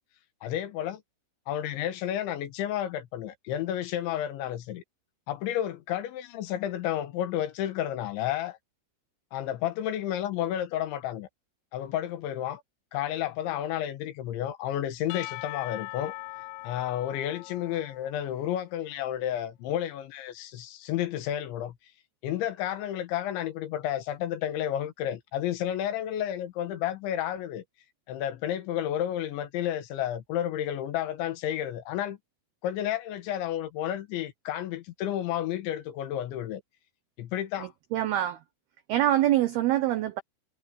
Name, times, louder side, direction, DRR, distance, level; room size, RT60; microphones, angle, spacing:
voice 1, 0.4-1.0 1.5-4.8 5.3-8.6 9.3-11.3 11.7-12.6 12.9-16.2 16.6-21.8 22.2-27.6 28.1-32.2 32.6-36.6 37.2-37.7, left 11 dB, 70° left, 3.4 m, -31 dB
Percussion / Church bell, 15.1-18.7, left 21 dB, 85° left, 2.6 m, -41 dB
voice 2, 37.6-38.4 38.9-40.2, right 13 dB, 90° right, 2.2 m, -25 dB
omnidirectional pair, 5.8 m